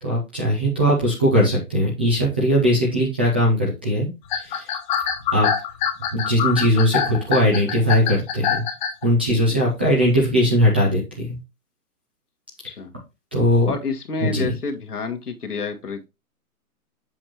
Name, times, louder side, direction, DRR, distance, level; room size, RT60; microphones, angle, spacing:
voice 1, 0.0-4.7 5.3-5.5 6.1-8.6 9.0-11.4 13.3-13.7 14.2-14.5, equal, 10° right, -4 dB, 0.4 m, -20 dB
sound 1, 4.2-9.1, left 8 dB, 30° left, 1.2 m, -24 dB
voice 2, 13.7-16.0, left 4 dB, 75° left, 5 dB, 1.8 m, -29 dB
7.6 x 5.7 x 3.1 m, 0.24 s
figure-of-eight pair, 135°, 46 cm